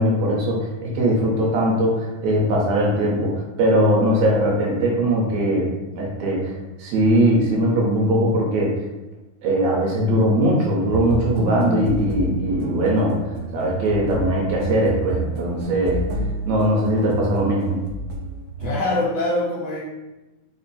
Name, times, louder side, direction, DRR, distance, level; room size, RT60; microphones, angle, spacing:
voice 1, 0.0-5.7 6.0-8.7 9.4-13.2 13.5-16.0 16.5-17.8, right 1 dB, 70° right, -3 dB, 2.1 m, -20 dB
sound 1, 10.9-18.8, right 2 dB, 90° right, 1.4 m, -30 dB
voice 2, 18.6-19.8, left 2 dB, 75° left, -7 dB, 1.5 m, -23 dB
5.1 x 2.2 x 4.0 m, 1.1 s
omnidirectional pair, 3.6 m